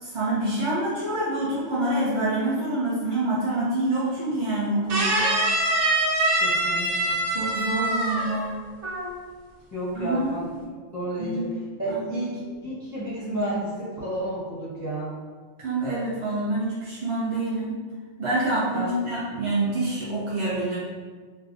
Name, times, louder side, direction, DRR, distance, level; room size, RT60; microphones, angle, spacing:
voice 1, 0.0-5.2 7.3-8.5 9.9-10.3 11.2-11.5 11.9-12.2 15.6-17.7 18.2-20.8, right 2 dB, 30° right, -9 dB, 0.7 m, -26 dB
sound 1, 4.9-8.5 8.8-9.2, right 1 dB, 85° right, 1.0 m, -24 dB
voice 2, 6.4-7.2 9.7-10.5 10.7-11.4 11.8-15.1 18.7-19.0, right 1 dB, 20° left, -10 dB, 0.7 m, -31 dB
4.9 x 2.2 x 2.6 m, 1.5 s
omnidirectional pair, 1.2 m